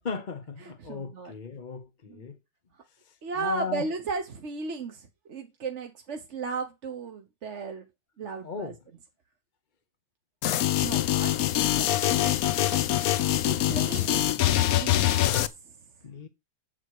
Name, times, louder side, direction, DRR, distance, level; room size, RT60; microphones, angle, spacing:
voice 1, 0.0-2.4 3.0-3.9 8.4-8.7 16.0-16.3, left 5 dB, 35° left, 0.9 m, -37 dB
voice 2, 0.6-1.3 2.1-2.2 3.2-7.8 8.2-8.7 10.8-11.5 11.7-12.4 13.4-14.2 14.7-15.4 15.6-15.7, right 4 dB, 50° right, 1.3 m, -36 dB
sound 1, 10.4-15.5, left 13 dB, 70° left, 1.1 m, -24 dB
8.0 x 7.7 x 4.8 m
omnidirectional pair, 1.7 m